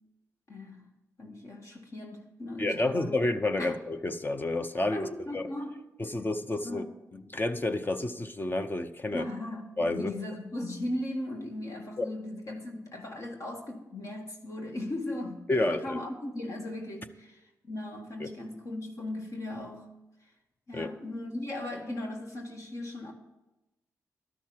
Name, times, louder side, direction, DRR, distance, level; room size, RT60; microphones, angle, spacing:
voice 1, 0.5-0.9 1.2-3.2 3.6-3.8 4.9-5.8 6.6-6.9 9.1-19.9 20.2-20.3 20.7-23.1, left 1 dB, 50° left, 1.6 m, -38 dB
voice 2, 2.6-5.1 5.3-5.4 6.0-6.8 7.1-9.2 9.8-10.1 12.0-12.1 15.5-16.0 18.2-18.3 20.7-20.9, left 2 dB, 30° left, 0.8 m, -30 dB
12.0 x 6.2 x 7.5 m
cardioid pair, 55°, 7 cm